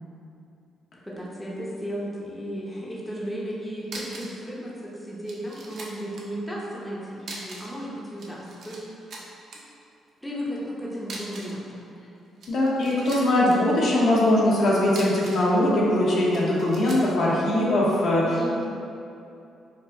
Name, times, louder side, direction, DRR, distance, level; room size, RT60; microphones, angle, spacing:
voice 1, 1.1-9.2 10.2-11.8 18.3-18.6, equal, ahead, -6 dB, 0.6 m, -34 dB
sound 1, 3.5-3.6 3.8-4.4 4.7-4.8 5.2-6.3 7.2-7.8 8.1-8.8 9.1-9.6 11.0-11.6 12.2-13.6 14.8-15.5 16.3-17.1, right 2 dB, 60° right, 0.6 m, -40 dB
voice 2, 12.5-18.4, left 1 dB, 65° left, -5 dB, 0.7 m, -21 dB
4.5 x 2.4 x 2.6 m, 2.7 s
cardioid pair, 90°, 0 cm